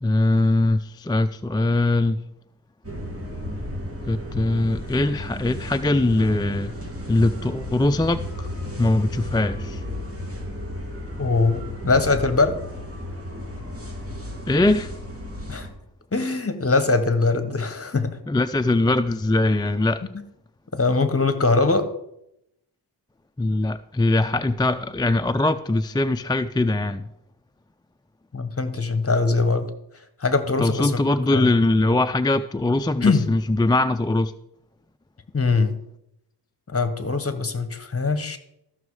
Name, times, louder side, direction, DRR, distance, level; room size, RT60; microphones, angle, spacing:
voice 1, 0.0-2.2 4.1-6.7 7.1-8.5 8.8-9.8 14.5-14.9 18.3-20.0 23.4-27.1 30.6-34.3, left 2 dB, 10° left, 0.3 m, -21 dB
sound 1, 2.8-15.7, left 1 dB, 35° right, 2.5 m, -33 dB
voice 2, 11.2-11.6 11.9-12.6 15.5-15.7 16.1-18.2 20.7-21.9 28.3-29.7 30.2-31.0 31.3-31.5 33.0-33.3 35.3-35.8 36.7-38.4, left 3 dB, 35° left, 1.1 m, -22 dB
14.0 x 6.2 x 4.8 m
wide cardioid pair, 70°, 41 cm